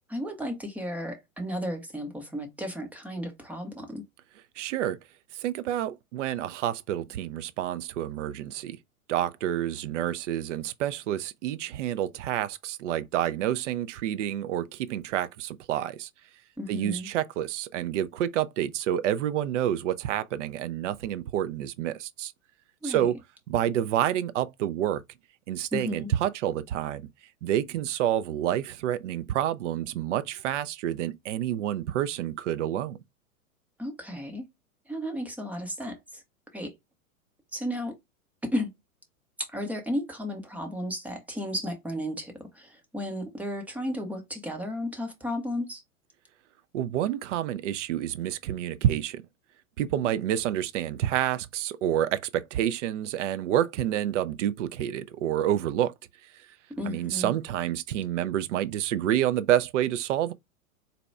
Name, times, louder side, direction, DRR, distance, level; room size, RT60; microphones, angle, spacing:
voice 1, 0.1-4.0 16.6-17.1 22.8-23.1 25.7-26.1 33.8-34.5 34.9-36.2 36.5-36.7 37.5-38.0 38.5-38.7 39.5-45.8 56.7-57.3, equal, 5° right, 0.5 m, -34 dB
voice 2, 4.6-5.0 5.3-8.8 9.1-16.1 16.7-22.3 22.8-23.2 23.5-25.0 25.5-27.1 27.4-33.0 46.7-49.2 49.8-55.9 56.9-60.3, right 11 dB, 55° right, 0.5 m, -28 dB
4.1 x 2.2 x 3.2 m
figure-of-eight pair, 105°, 43 cm